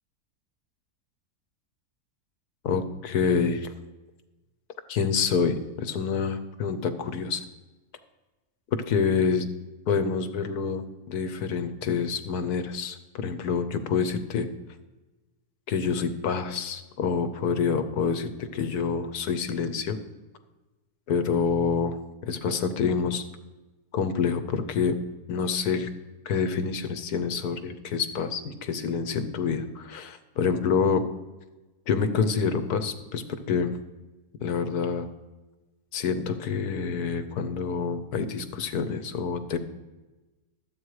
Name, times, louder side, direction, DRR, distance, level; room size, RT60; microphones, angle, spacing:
voice 1, 2.6-3.7 4.9-7.4 8.7-9.5 9.9-14.5 15.7-20.0 21.1-22.0 22.3-23.2 23.9-25.0 25.3-25.9 26.2-31.0 31.9-33.7 34.4-35.1 35.9-39.6, left 5 dB, 75° left, 9 dB, 1.3 m, -27 dB
12.0 x 8.3 x 4.8 m, 1.1 s
omnidirectional pair, 1.7 m